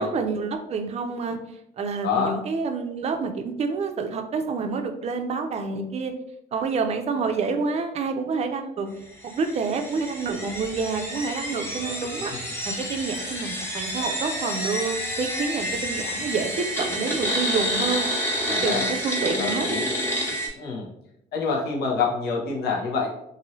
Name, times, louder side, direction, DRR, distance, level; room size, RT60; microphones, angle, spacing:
voice 1, 0.0-1.4 1.8-6.1 6.5-8.9 9.2-12.3 12.6-18.1 18.6-19.8, right 4 dB, 40° right, 5 dB, 0.5 m, -28 dB
voice 2, 2.0-2.3 18.5-18.9 19.4-19.9 20.6-20.9 21.3-23.1, left 5 dB, 75° left, -1 dB, 0.9 m, -26 dB
sound 1, 9.3-20.5, equal, 15° left, 1.0 m, -29 dB
2.7 x 2.6 x 3.0 m, 0.80 s
cardioid pair, 110°, 17 cm